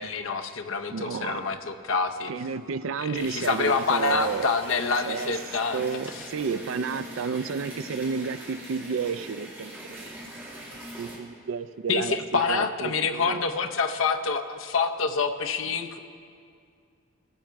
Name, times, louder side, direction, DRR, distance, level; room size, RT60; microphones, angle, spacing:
voice 1, 0.0-2.3 3.0-6.3 11.9-16.0, left 4 dB, 85° left, 6 dB, 0.7 m, -27 dB
voice 2, 0.9-1.5 2.3-4.5 5.1-5.3 5.7-10.1 11.0-13.4, right 5 dB, 85° right, 13 dB, 0.4 m, -31 dB
sound 1, 3.2-11.2, right 1 dB, 10° right, 1.7 m, -42 dB
18.5 x 7.5 x 4.6 m, 2.3 s
head